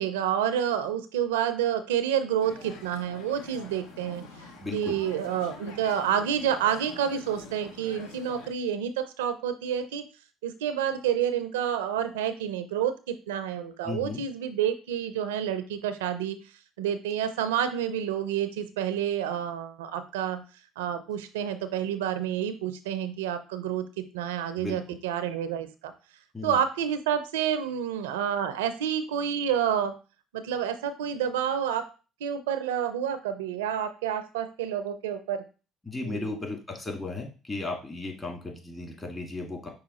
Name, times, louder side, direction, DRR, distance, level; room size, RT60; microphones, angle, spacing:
voice 1, 0.0-4.3 4.7-10.0 10.4-16.4 16.8-20.4 20.8-25.9 26.4-29.9 30.3-31.8 32.2-35.4 36.0-36.4, right 9 dB, 85° right, 11 dB, 0.4 m, -29 dB
sound 1, 2.4-8.5, left 3 dB, 80° left, 0.7 m, -45 dB
voice 2, 4.6-5.0 13.8-14.2 24.6-25.0 26.3-26.6 35.8-39.7, left 3 dB, 25° left, 1 dB, 1.7 m, -35 dB
5.5 x 2.3 x 4.1 m, 0.33 s
hypercardioid pair, 65°, 0 cm